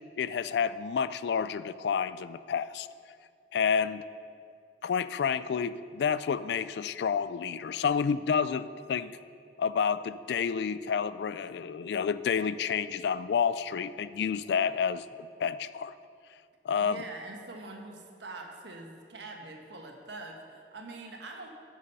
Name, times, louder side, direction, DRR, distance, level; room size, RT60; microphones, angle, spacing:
voice 1, 0.2-2.9 3.5-4.0 4.8-9.1 9.6-15.0 15.4-15.9 16.6-17.0, left 6 dB, 65° left, 15 dB, 0.3 m, -29 dB
voice 2, 16.8-21.5, right 2 dB, 80° right, 2 dB, 1.3 m, -44 dB
12.5 x 6.2 x 5.4 m, 2.3 s
head